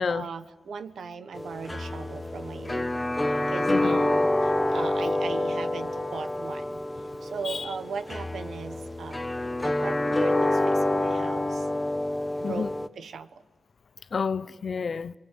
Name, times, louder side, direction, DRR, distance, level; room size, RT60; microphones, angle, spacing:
voice 1, 0.0-3.0 3.5-6.8 7.2-11.7 12.4-13.3, right 5 dB, 85° right, 1.3 m, -39 dB
sound 1, 1.3-12.9, left 1 dB, 20° left, 1.1 m, -27 dB
voice 2, 3.7-4.0 7.4-7.6 12.4-12.7 14.1-15.1, left 5 dB, 60° left, 0.7 m, -29 dB
27.0 x 23.5 x 7.8 m
cardioid pair, 70°, 0 cm